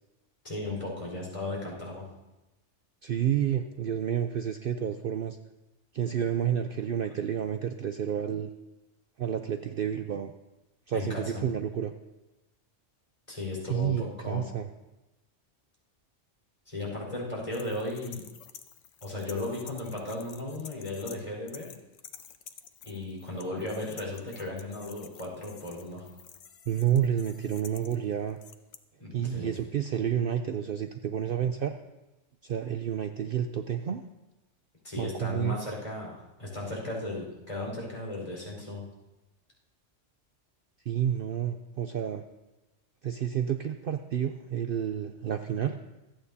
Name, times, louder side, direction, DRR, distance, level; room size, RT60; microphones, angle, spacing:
voice 1, 0.4-2.0 10.9-11.4 13.3-14.5 16.7-18.2 19.0-21.7 22.8-26.1 29.0-29.5 34.8-38.8, left 2 dB, 30° left, -4 dB, 4.7 m, -36 dB
voice 2, 3.0-5.4 5.9-8.5 9.2-10.3 10.9-11.9 13.7-14.7 26.7-28.4 29.1-31.7 32.4-34.0 35.0-35.5 40.9-42.2 43.0-45.8, right 9 dB, 55° right, 7 dB, 0.7 m, -30 dB
sound 1, 17.5-21.2 21.5-28.8, left 8 dB, 85° left, 1.1 m, -50 dB
26.5 x 8.9 x 2.8 m, 1.0 s
omnidirectional pair, 1.3 m